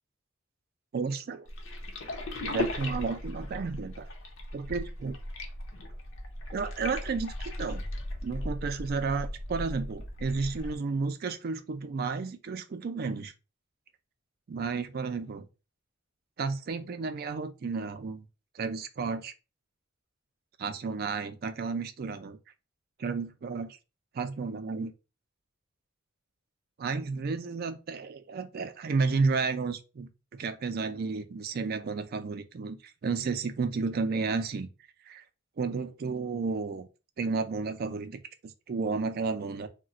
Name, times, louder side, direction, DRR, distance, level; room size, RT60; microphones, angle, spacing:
voice 1, 0.9-1.5 2.4-4.1 4.5-5.2 6.5-7.8 8.2-13.3 14.5-15.5 16.4-18.2 18.5-19.3 20.6-22.4 23.0-23.8 24.1-24.9 26.8-34.7 35.1-35.2 35.6-36.9 37.2-39.7, right 4 dB, 50° right, 0.4 m, -32 dB
sound 1, 1.5-10.8, left 1 dB, 75° left, 0.7 m, -37 dB
2.4 x 2.2 x 3.8 m
head